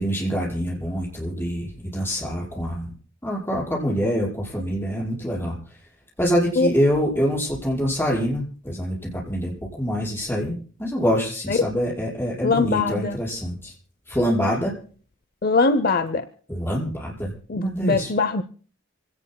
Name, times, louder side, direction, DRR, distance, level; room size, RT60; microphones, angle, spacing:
voice 1, 0.0-2.9 3.2-5.6 6.2-13.7 14.1-14.7 16.5-18.1, equal, 10° left, -5 dB, 5.5 m, -25 dB
voice 2, 12.4-13.2 15.4-16.3 17.5-18.4, left 3 dB, 50° left, 11 dB, 0.6 m, -21 dB
26.5 x 17.5 x 2.2 m, 0.42 s
head